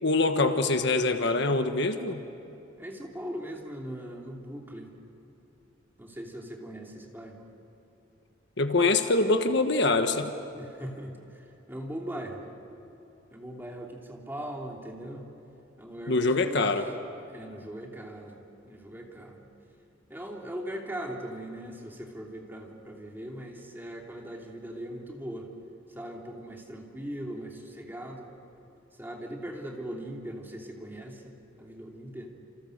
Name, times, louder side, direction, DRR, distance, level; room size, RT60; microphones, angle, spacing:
voice 1, 0.0-2.2 8.6-10.3 16.1-16.9, left 3 dB, 65° left, 7 dB, 1.4 m, -24 dB
voice 2, 2.8-4.9 6.0-7.5 10.5-12.4 13.3-15.3 15.8-16.7 17.3-19.5 20.1-25.5 25.9-28.3 29.0-32.3, right 1 dB, 10° right, 0 dB, 3.1 m, -40 dB
29.5 x 28.0 x 6.6 m, 2.9 s
head